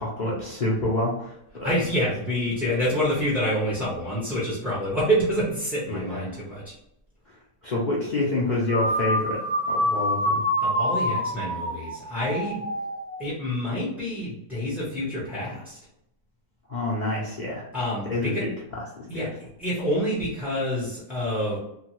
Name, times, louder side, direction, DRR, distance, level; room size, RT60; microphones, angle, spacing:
voice 1, 0.0-1.7 5.9-6.4 7.6-9.4 9.7-10.4 16.7-17.6 18.1-19.3, left 2 dB, 65° left, -5 dB, 0.4 m, -28 dB
voice 2, 1.6-6.7 10.6-12.6 13.2-15.8 17.7-18.4 19.1-21.6, equal, ahead, -8 dB, 0.4 m, -27 dB
sound 1, 8.7-13.2, equal, 50° left, 0.8 m, -26 dB
2.8 x 2.2 x 2.9 m, 0.80 s
omnidirectional pair, 1.6 m